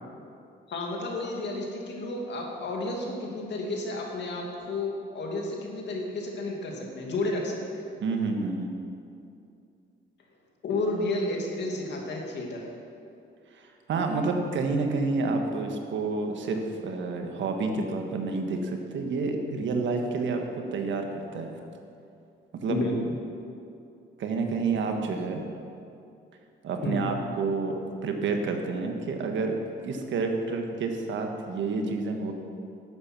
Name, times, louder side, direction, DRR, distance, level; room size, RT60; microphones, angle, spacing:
voice 1, 0.7-7.8 10.6-12.6 22.7-23.1 26.8-27.1, left 2 dB, 60° left, 0 dB, 2.4 m, -31 dB
voice 2, 8.0-8.7 13.9-20.4 20.7-21.6 22.5-22.8 24.2-25.5 26.6-29.6 29.8-32.3, right 4 dB, 70° right, 4 dB, 1.5 m, -29 dB
11.0 x 8.9 x 6.0 m, 2.6 s
cardioid pair, 90°, 20 cm